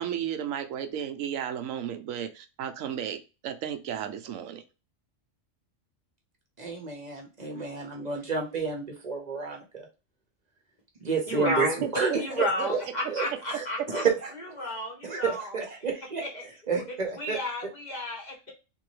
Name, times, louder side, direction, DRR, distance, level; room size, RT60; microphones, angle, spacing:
voice 1, 0.0-4.6 11.8-11.9 12.6-12.7, right 9 dB, 90° right, 1.0 m, -33 dB
voice 2, 6.6-9.9 11.0-12.8 13.1-14.3 15.0-16.2 16.7-17.4, right 5 dB, 40° right, 0.9 m, -30 dB
voice 3, 11.3-11.8 12.1-14.0 14.6-15.6 16.2-16.4 16.8-16.9 17.2-18.5, left 1 dB, 40° left, 1.0 m, -32 dB
3.5 x 2.7 x 3.1 m
omnidirectional pair, 1.3 m